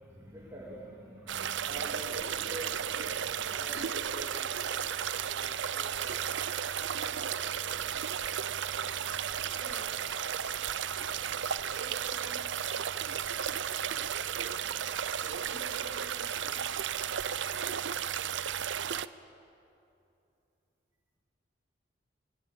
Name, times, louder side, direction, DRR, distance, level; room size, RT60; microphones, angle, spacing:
voice 1, 0.0-6.4 6.7-8.4 8.7-10.1, equal, 15° right, -5 dB, 2.9 m, -48 dB
sound 1, 1.3-19.1, right 8 dB, 70° right, 0.6 m, -34 dB
voice 2, 9.9-10.6 10.9-11.5 11.7-16.7, left 1 dB, 20° left, -4 dB, 4.6 m, -55 dB
24.0 x 17.5 x 8.7 m, 2.7 s
head